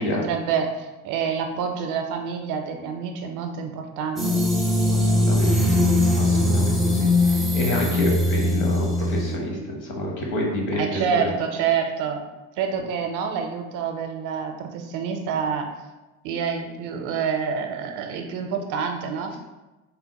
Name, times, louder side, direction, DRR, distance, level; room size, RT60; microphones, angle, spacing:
voice 1, 0.0-4.5 10.8-12.2 12.6-15.7 16.2-19.3, right 6 dB, 55° right, 4 dB, 0.5 m, -27 dB
sound 1, 4.2-9.4, left 1 dB, ahead, 0.4 m, -21 dB
voice 2, 4.9-5.9 6.2-11.3, left 1 dB, 55° left, 0 dB, 1.1 m, -28 dB
3.7 x 2.0 x 2.9 m, 1.1 s
hypercardioid pair, 80°, 38 cm